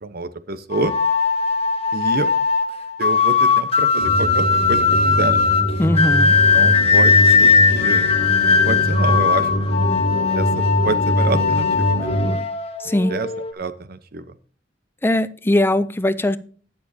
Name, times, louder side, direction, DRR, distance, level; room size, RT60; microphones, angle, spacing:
voice 1, 0.0-0.9 1.9-2.3 3.0-5.4 6.2-6.3 6.5-8.0 8.7-9.5 10.3-12.4 13.1-13.3 13.5-14.2, right 3 dB, 55° right, 13 dB, 0.9 m, -27 dB
sound 1, 0.7-13.5, left 5 dB, 35° left, 1.5 m, -18 dB
sound 2, 4.0-12.3, equal, 50° left, 5.1 m, -23 dB
voice 2, 5.8-6.3 12.8-13.2 15.0-16.4, left 1 dB, 10° left, 14 dB, 0.5 m, -19 dB
20.0 x 7.1 x 2.8 m, 0.42 s
head